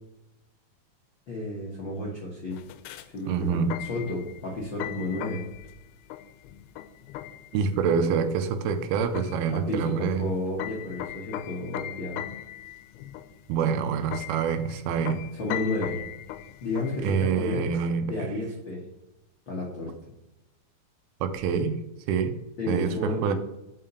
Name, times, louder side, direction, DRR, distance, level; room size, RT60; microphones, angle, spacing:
voice 1, 1.3-2.6 3.1-5.4 9.5-12.2 15.4-16.0 16.6-17.7 18.0-18.8 19.5-19.9 22.6-23.3, left 2 dB, 65° left, -4 dB, 1.1 m, -32 dB
sound 1, 2.5-17.1, left 13 dB, 85° left, 2.5 m, -39 dB
voice 2, 3.3-3.7 7.5-10.3 13.5-15.2 17.0-18.3 21.2-21.7 22.1-22.3 22.7-23.3, right 6 dB, 85° right, 9 dB, 2.6 m, -26 dB
5.7 x 5.5 x 6.7 m, 0.95 s
omnidirectional pair, 4.5 m